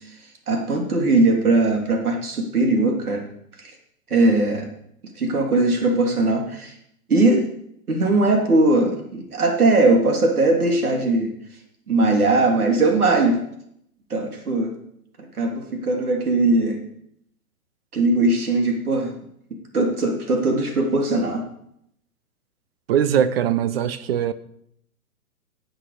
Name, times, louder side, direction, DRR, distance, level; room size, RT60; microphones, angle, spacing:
voice 1, 0.5-3.2 3.6-3.7 4.1-4.7 5.2-6.7 7.1-7.5 7.9-11.3 11.9-13.4 14.1-14.7 15.4-16.8 17.9-19.1 19.7-21.4 23.1-23.2, right 2 dB, 75° right, 3.3 m, -20 dB
voice 2, 22.9-24.3, right 9 dB, 40° right, 0.8 m, -21 dB
17.5 x 8.2 x 5.0 m
hypercardioid pair, 125°, 45 cm